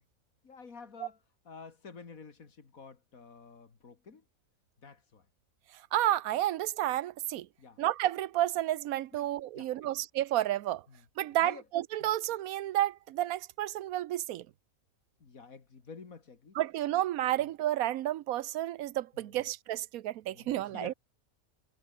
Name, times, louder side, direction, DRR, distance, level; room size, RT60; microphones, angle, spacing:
voice 1, 0.4-1.2 1.4-4.2 4.8-5.3 7.6-7.8 9.1-9.3 9.5-9.9 10.9-11.0 11.4-11.6 12.0-12.1 15.2-16.6 17.4-17.5 19.1-19.4 20.3-20.9, left 5 dB, 75° left, 2.7 m, -50 dB
voice 2, 5.9-7.5 7.8-10.8 11.2-14.5 16.5-20.9, right 13 dB, 85° right, 1.1 m, -31 dB
omnidirectional pair, 1.5 m